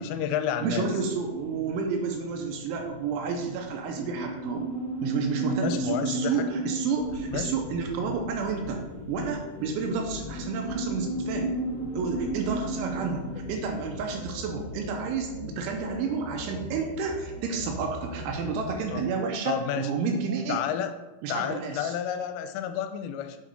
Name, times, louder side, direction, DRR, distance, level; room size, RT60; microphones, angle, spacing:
voice 1, 0.0-0.9 5.6-6.5 7.3-7.5 18.9-19.0 19.5-19.9 20.5-20.9 21.3-23.4, left 9 dB, 85° left, 7 dB, 3.1 m, -30 dB
voice 2, 0.6-4.7 5.0-8.8 9.1-11.5 11.9-20.6 21.2-21.9, right 5 dB, 85° right, 3 dB, 2.9 m, -30 dB
sound 1, 0.8-14.9, right 2 dB, 25° left, 1.4 m, -35 dB
sound 2, 7.0-18.9, left 2 dB, 65° left, 2.9 m, -40 dB
7.6 x 4.9 x 4.0 m, 1.0 s
omnidirectional pair, 5.8 m